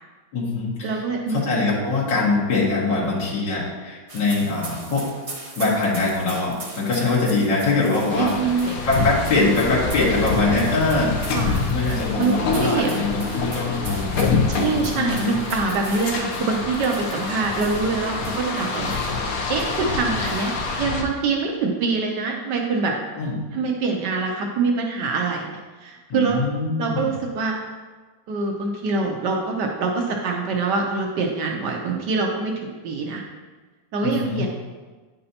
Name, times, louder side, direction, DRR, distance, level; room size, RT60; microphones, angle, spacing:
voice 1, 0.3-1.0 1.3-5.1 5.6-8.5 8.9-11.4 11.7-14.1 14.9-15.4 23.2-23.3 26.1-27.1 34.0-34.4, left 3 dB, 75° left, -8 dB, 2.5 m, -23 dB
voice 2, 0.8-1.4 8.2-8.8 11.3-11.6 12.2-12.9 14.5-19.0 19.5-22.9 23.5-25.5 25.8-26.4 26.8-27.6 28.3-33.2 33.9-34.5, right 4 dB, 75° right, 1 dB, 1.3 m, -24 dB
sound 1, 4.1-20.8, right 2 dB, 40° right, 0.5 m, -40 dB
sound 2, 8.1-21.0, left 4 dB, 60° left, 1.1 m, -26 dB
9.5 x 5.4 x 2.8 m, 1.3 s
omnidirectional pair, 1.9 m